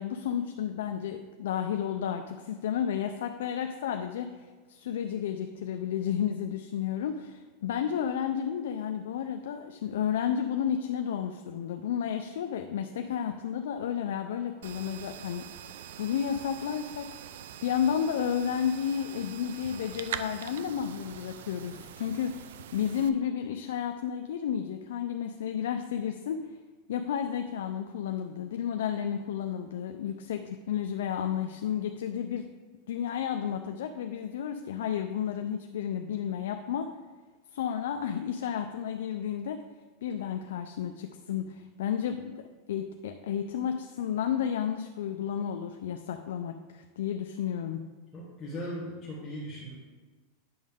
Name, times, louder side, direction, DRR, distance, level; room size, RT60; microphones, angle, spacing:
voice 1, 0.0-15.4 16.0-17.1 17.6-26.5 26.9-32.5 32.9-36.9 37.5-39.6 40.0-47.9, left 8 dB, 85° left, 6 dB, 0.4 m, -32 dB
sound 1, 14.6-23.1, right 9 dB, 80° right, 0.4 m, -43 dB
voice 2, 48.1-49.7, equal, 10° left, -8 dB, 1.4 m, -38 dB
8.6 x 6.3 x 3.6 m, 1.4 s
supercardioid pair, 160°, 0 cm